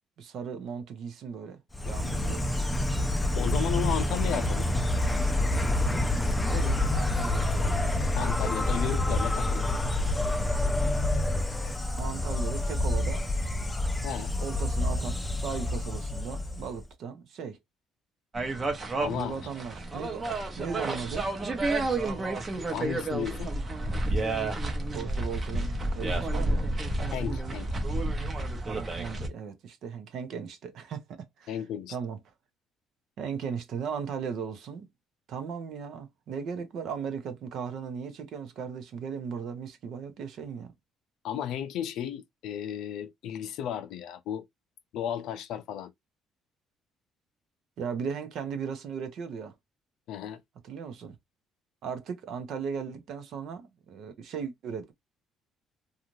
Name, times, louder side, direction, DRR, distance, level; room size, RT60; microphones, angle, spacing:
voice 1, 0.2-1.6 1.9-2.4 6.5-7.8 12.0-13.3 14.4-17.6 19.1-20.2 20.5-21.3 24.9-26.7 28.9-31.6 31.9-32.2 33.2-34.9 35.3-40.7 47.8-49.5 50.6-51.2 51.8-54.9, right 6 dB, 65° right, 0.7 m, -37 dB
Insect, 1.7-16.8, left 1 dB, 10° left, 0.5 m, -27 dB
voice 2, 3.3-4.7 8.2-9.7 14.0-14.3 19.0-19.4 22.7-23.5 27.1-27.7 31.5-31.9 41.2-44.4 44.9-45.9 50.1-50.4, left 10 dB, 75° left, 0.4 m, -34 dB
sound 1, 18.3-29.3, right 2 dB, 30° right, 0.8 m, -30 dB
2.6 x 2.4 x 3.0 m
cardioid pair, 110°, 0 cm